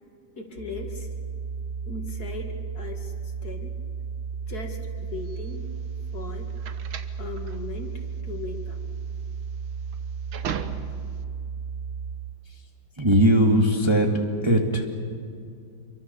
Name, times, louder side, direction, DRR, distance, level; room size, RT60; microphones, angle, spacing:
voice 1, 0.3-1.1 1.9-3.8 4.5-5.7 6.1-6.5 7.2-8.8, left 3 dB, 50° left, 3 dB, 2.7 m, -38 dB
sound 1, 0.6-12.2, right 6 dB, 65° right, 4.4 m, -34 dB
sound 2, 5.2-11.2, right 8 dB, 80° right, 1.9 m, -38 dB
voice 2, 13.0-14.1 14.4-14.9, equal, 15° right, 1 dB, 1.9 m, -19 dB
27.0 x 24.0 x 7.0 m, 2.3 s
omnidirectional pair, 2.2 m